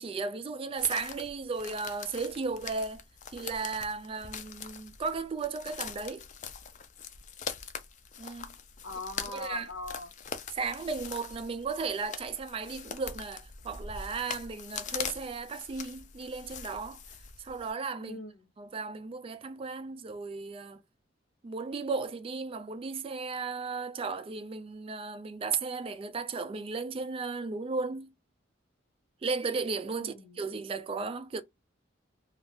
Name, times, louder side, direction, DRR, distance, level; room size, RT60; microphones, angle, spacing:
voice 1, 0.0-3.0 3.3-6.3 8.2-8.5 9.3-9.7 10.5-17.0 17.4-18.2 18.6-20.8 21.4-28.1 29.2-31.4, right 4 dB, 30° right, 0.3 m, -35 dB
sound 1, 0.8-17.7, left 7 dB, 40° left, 0.4 m, -43 dB
voice 2, 8.8-10.1 18.0-18.5 30.0-30.4, left 2 dB, 80° left, 0.8 m, -41 dB
2.5 x 2.4 x 3.4 m
head